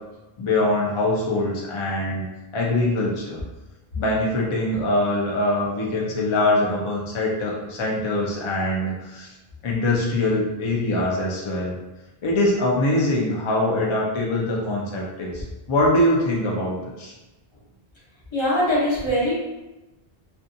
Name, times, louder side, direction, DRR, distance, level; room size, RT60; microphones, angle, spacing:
voice 1, 0.4-2.3 2.5-3.4 4.0-9.3 9.6-11.8 12.2-15.4 15.7-17.1, left 1 dB, 55° left, -2 dB, 0.3 m, -23 dB
voice 2, 18.3-19.3, equal, 30° left, -7 dB, 0.7 m, -21 dB
2.6 x 2.2 x 2.5 m, 1.1 s
omnidirectional pair, 1.0 m